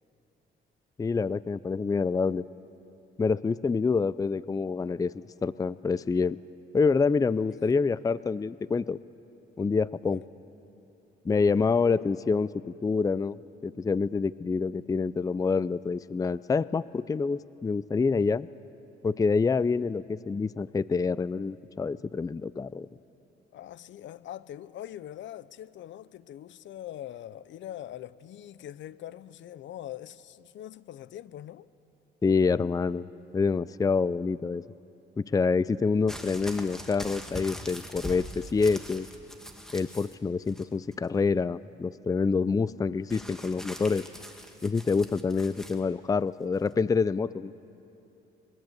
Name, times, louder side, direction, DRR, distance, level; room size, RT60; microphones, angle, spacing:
voice 1, 1.0-2.4 3.2-5.1 5.4-6.4 6.7-9.0 9.6-10.2 11.3-12.5 12.8-13.4 13.6-18.5 19.0-22.9 32.2-33.1 33.3-34.6 35.2-39.1 39.7-44.1 44.6-47.5, left 4 dB, 20° left, 0.4 m, -27 dB
voice 2, 23.5-31.7, left 12 dB, 70° left, 0.7 m, -43 dB
sound 1, 36.1-40.2 40.5-41.1 43.1-45.8 46.7-46.8, equal, ahead, 2.3 m, -42 dB
22.0 x 21.5 x 8.2 m
cardioid pair, 90°, 20 cm